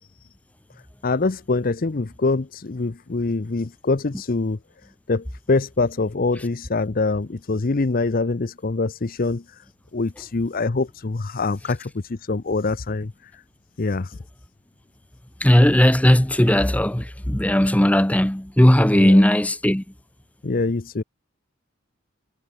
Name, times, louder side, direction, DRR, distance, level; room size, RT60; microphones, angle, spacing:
voice 1, 1.0-4.6 5.1-9.4 9.9-13.1 13.8-14.1 18.9-19.2 20.4-21.0, left 3 dB, 45° left, 0.6 m, -24 dB
voice 2, 15.4-19.8, equal, 5° left, 0.8 m, -17 dB
head